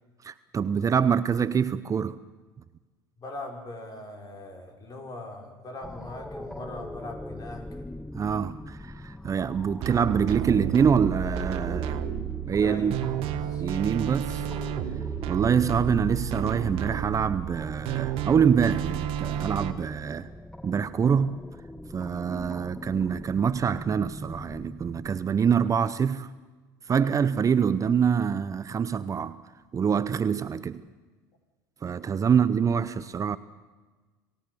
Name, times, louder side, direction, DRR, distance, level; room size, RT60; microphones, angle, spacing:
voice 1, 0.2-2.2 8.1-12.0 12.5-13.0 13.6-14.5 15.3-20.3 20.6-21.4 21.9-26.3 26.9-29.4 29.7-30.8 31.8-33.4, right 7 dB, 30° right, 0.8 m, -25 dB
voice 2, 3.2-7.9 12.5-13.6 32.3-32.4, left 2 dB, 35° left, 5.8 m, -41 dB
sound 1, 5.8-25.2, left 1 dB, 5° left, 0.8 m, -41 dB
sound 2, 9.8-19.7, right 10 dB, 60° right, 1.5 m, -31 dB
26.5 x 16.5 x 7.0 m
hypercardioid pair, 80°, 11 cm